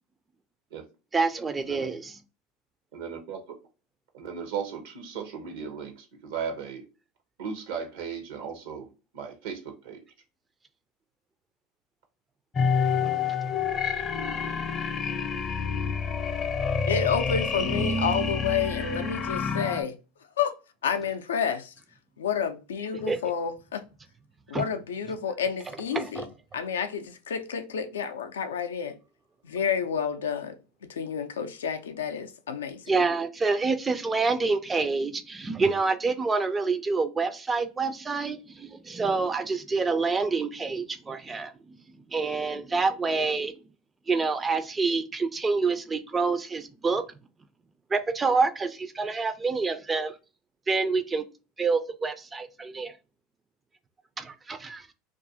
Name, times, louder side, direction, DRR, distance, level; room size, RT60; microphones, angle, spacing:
voice 1, 1.1-2.1 22.9-23.2 24.5-24.7 25.9-26.3 32.9-41.8 42.1-43.6 44.1-47.0 47.9-50.2 50.7-51.2 51.6-52.9 54.2-54.9, right 4 dB, 20° right, 0.3 m, -27 dB
voice 2, 2.9-3.6 4.1-6.8 7.4-8.9 9.1-10.0 12.9-13.0, right 6 dB, 75° right, 0.6 m, -36 dB
sound 1, 12.5-19.8, left 5 dB, 35° left, 0.5 m, -28 dB
voice 3, 16.9-20.0 20.4-20.5 20.8-21.7 22.2-23.8 24.5-26.3 26.5-29.0 29.4-30.6 30.9-32.8, left 7 dB, 90° left, 0.3 m, -29 dB
2.4 x 2.3 x 2.6 m
hypercardioid pair, 85°, 0 cm